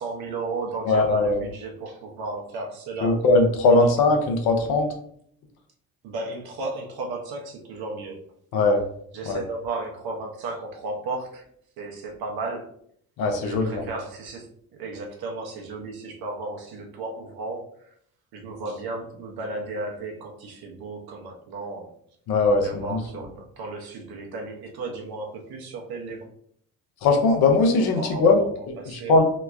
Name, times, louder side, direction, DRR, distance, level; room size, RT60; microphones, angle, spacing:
voice 1, 0.0-3.2 3.7-3.9 6.0-8.2 9.1-11.5 11.8-12.8 13.4-17.9 18.3-22.0 22.6-26.3 28.0-29.2, right 3 dB, 60° right, 1 dB, 0.7 m, -34 dB
voice 2, 0.9-1.4 3.0-4.9 8.5-8.8 9.3-9.4 13.2-13.8 22.3-23.0 27.0-29.2, left 3 dB, 60° left, 4 dB, 0.7 m, -20 dB
3.0 x 2.1 x 2.4 m, 0.66 s
hypercardioid pair, 55°, 42 cm